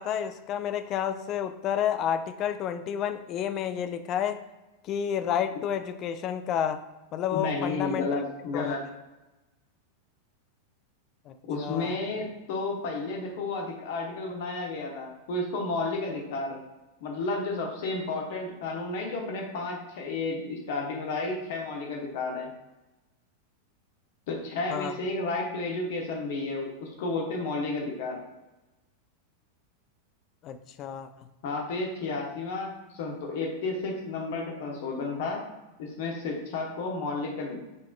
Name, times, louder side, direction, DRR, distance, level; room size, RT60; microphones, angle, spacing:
voice 1, 0.0-4.4 4.8-6.9 7.1-8.2 8.5-8.8 11.3-11.4 11.6-11.9 24.7-24.9 30.4-31.3, left 9 dB, 35° left, 10 dB, 0.3 m, -30 dB
voice 2, 7.3-8.8 11.4-16.6 17.0-22.5 24.3-28.2 31.4-35.4 35.8-37.6, left 3 dB, 50° left, 0 dB, 1.1 m, -32 dB
6.3 x 3.5 x 2.3 m, 1.0 s
figure-of-eight pair, 90°, 0 cm